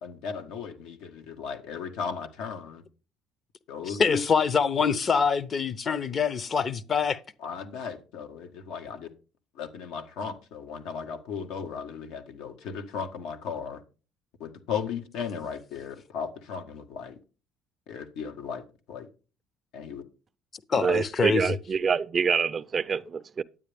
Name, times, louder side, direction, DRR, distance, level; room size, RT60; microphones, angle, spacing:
voice 1, 0.0-2.8 3.7-4.2 7.4-9.1 9.5-13.8 14.4-17.2 17.9-19.1 19.7-20.0, left 6 dB, 85° left, 1.7 m, -36 dB
voice 2, 4.0-7.2 20.7-21.6, left 6 dB, 35° left, 0.8 m, -25 dB
voice 3, 20.8-23.4, right 6 dB, 35° right, 0.4 m, -26 dB
9.9 x 9.1 x 3.5 m
cardioid pair, 115°, 0 cm